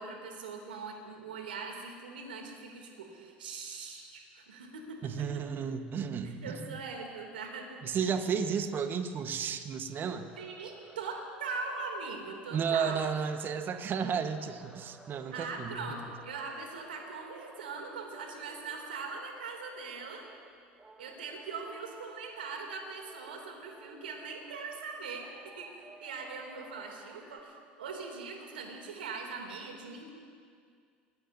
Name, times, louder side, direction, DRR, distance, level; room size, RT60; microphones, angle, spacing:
voice 1, 0.0-5.3 6.2-8.0 10.4-13.0 15.3-20.2 21.0-30.1, right 4 dB, 80° right, 2 dB, 2.7 m, -41 dB
voice 2, 5.0-6.7 7.8-10.3 12.5-15.9, right 6 dB, 40° right, 8 dB, 1.3 m, -33 dB
sound 1, 9.9-20.5 20.8-24.8 25.2-27.4, right 2 dB, 20° right, 1.5 m, -55 dB
26.5 x 19.5 x 2.7 m, 2.1 s
hypercardioid pair, 70°, 5 cm